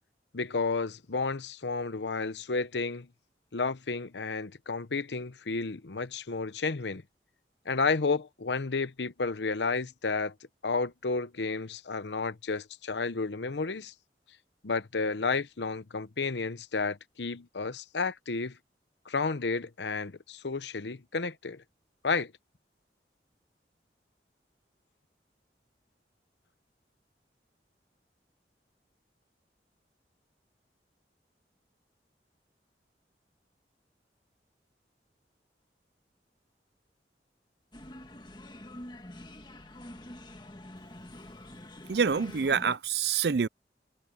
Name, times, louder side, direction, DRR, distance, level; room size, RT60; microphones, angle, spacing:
voice 1, 0.3-3.1 3.5-7.0 7.7-10.3 10.6-13.9 14.6-18.6 19.1-21.6 22.0-22.3, left 4 dB, 85° left, 0.9 m, -31 dB
sound 1, 37.7-42.8, left 1 dB, 25° left, 1.7 m, -46 dB
voice 2, 41.9-43.5, right 6 dB, 70° right, 0.5 m, -26 dB
head